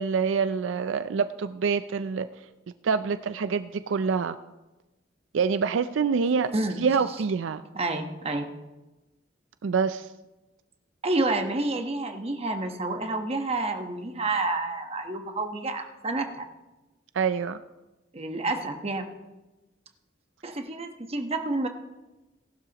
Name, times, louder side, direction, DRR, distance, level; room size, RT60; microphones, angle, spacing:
voice 1, 0.0-2.3 2.8-4.4 5.3-6.5 6.8-7.6 9.6-10.1 17.2-17.6, right 5 dB, 80° right, 12 dB, 0.4 m, -26 dB
voice 2, 7.7-8.5 11.0-16.5 18.1-19.1 20.4-21.7, right 2 dB, 35° right, 5 dB, 1.1 m, -29 dB
18.5 x 12.0 x 2.9 m, 1.1 s
head